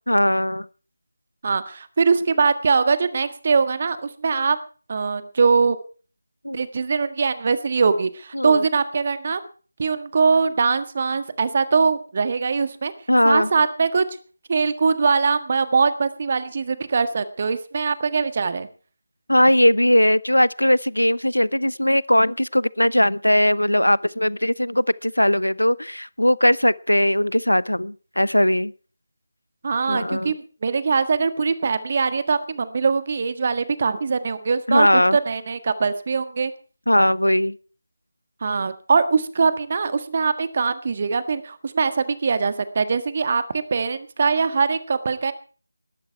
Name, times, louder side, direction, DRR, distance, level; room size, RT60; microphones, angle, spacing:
voice 1, 0.1-0.7 6.4-6.6 8.3-8.6 13.1-13.5 19.3-28.7 29.9-30.3 34.7-35.2 36.9-37.5, left 1 dB, 85° left, 21 dB, 0.8 m, -19 dB
voice 2, 1.4-4.6 4.9-5.8 6.5-9.4 9.8-12.9 13.2-14.0 14.5-18.7 29.6-36.5 38.4-45.3, right 5 dB, 35° right, 12 dB, 1.6 m, -22 dB
19.0 x 13.0 x 4.6 m, 0.40 s
figure-of-eight pair, 160°, 0 cm